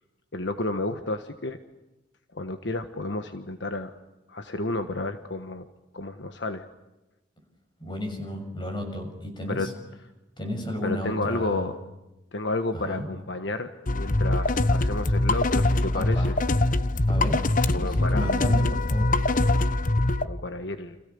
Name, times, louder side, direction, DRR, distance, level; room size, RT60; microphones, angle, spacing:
voice 1, 0.3-1.6 2.3-3.9 4.3-5.7 5.9-6.7 9.5-9.7 10.8-11.7 12.3-16.3 17.7-18.4 19.4-19.6 20.2-21.0, left 2 dB, 60° left, 8 dB, 1.4 m, -31 dB
voice 2, 7.8-9.7 10.4-11.7 12.7-13.1 15.9-16.3 17.0-19.1, left 1 dB, 25° left, 5 dB, 6.5 m, -33 dB
sound 1, 13.9-20.2, left 2 dB, 45° left, 0.9 m, -23 dB
30.0 x 27.0 x 7.1 m, 1.0 s
head